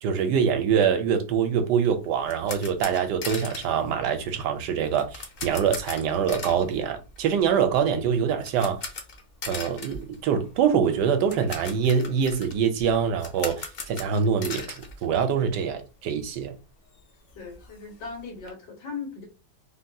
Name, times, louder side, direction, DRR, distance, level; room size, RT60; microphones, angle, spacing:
voice 1, 0.0-8.8 9.5-16.5, right 7 dB, 80° right, 1.2 m, -24 dB
sound 1, 1.8-16.2 16.6-16.7 16.9-18.5, left 4 dB, 60° left, 0.6 m, -40 dB
voice 2, 17.4-19.2, left 5 dB, 85° left, 1.8 m, -38 dB
3.6 x 2.2 x 2.6 m
omnidirectional pair, 1.8 m